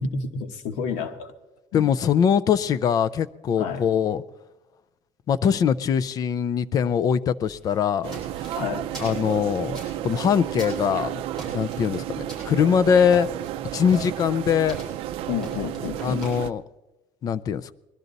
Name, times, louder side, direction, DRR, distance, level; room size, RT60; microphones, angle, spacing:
voice 1, 0.0-1.3 1.7-1.9 3.6-3.8 8.5-8.8 15.3-16.2, left 5 dB, 90° left, 1.3 m, -30 dB
voice 2, 1.7-4.2 5.3-8.6 9.0-11.2 11.5-13.3 13.7-14.8 16.0-16.6 17.2-17.7, left 7 dB, 35° left, 0.4 m, -22 dB
sound 1, 7.4-16.3, right 1 dB, 5° left, 6.8 m, -44 dB
sound 2, 8.0-16.5, right 12 dB, 55° right, 0.4 m, -32 dB
21.0 x 12.5 x 4.0 m
cardioid pair, 170°, 11 cm